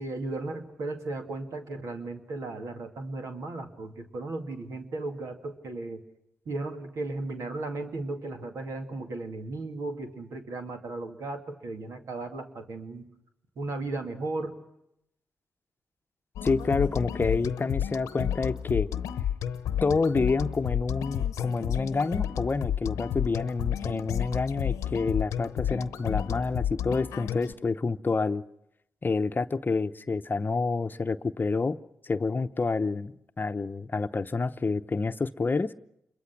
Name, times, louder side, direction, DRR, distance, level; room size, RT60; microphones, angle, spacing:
voice 1, 0.0-6.0 6.5-13.1 13.6-14.6, right 2 dB, 75° right, 4 dB, 2.4 m, -35 dB
sound 1, 16.4-27.5, left 9 dB, 85° left, 0.9 m, -31 dB
voice 2, 16.4-18.9 19.8-28.4 29.0-31.8 32.0-35.7, left 4 dB, 40° left, 11 dB, 0.8 m, -28 dB
28.0 x 22.5 x 6.0 m, 0.81 s
supercardioid pair, 40°, 5 cm